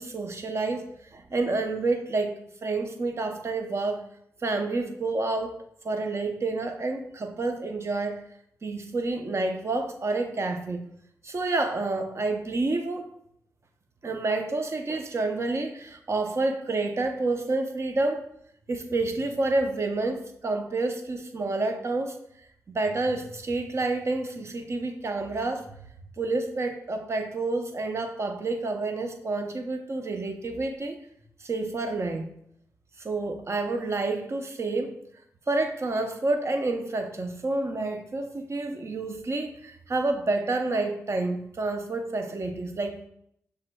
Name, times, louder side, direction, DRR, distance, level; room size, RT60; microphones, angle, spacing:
voice 1, 0.0-2.3 2.6-4.0 4.4-5.6 5.8-8.2 8.6-10.9 11.2-13.1 14.0-18.2 18.7-22.2 22.7-25.7 26.2-31.0 31.4-32.3 33.0-35.0 35.5-43.1, right 2 dB, 45° right, 6 dB, 0.7 m, -29 dB
6.5 x 3.4 x 2.2 m, 0.70 s
cardioid pair, 55°, 6 cm